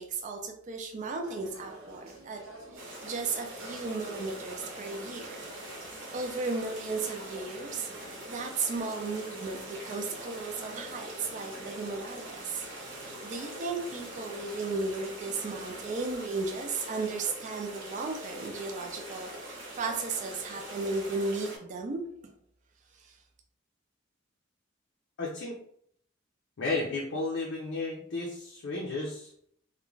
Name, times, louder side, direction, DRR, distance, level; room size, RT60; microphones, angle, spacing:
voice 1, 0.0-2.4 2.7-5.4 6.1-7.9 8.3-12.7 13.2-22.3 22.9-23.2, right 3 dB, 40° right, 3 dB, 0.4 m, -35 dB
sound 1, 1.2-16.0, right 2 dB, 90° right, 0.9 m, -50 dB
sound 2, 2.8-21.6, right 1 dB, 65° right, 0.8 m, -43 dB
voice 2, 25.2-25.6 26.6-29.3, left 3 dB, 60° left, -3 dB, 0.5 m, -33 dB
2.4 x 2.1 x 3.1 m, 0.68 s
head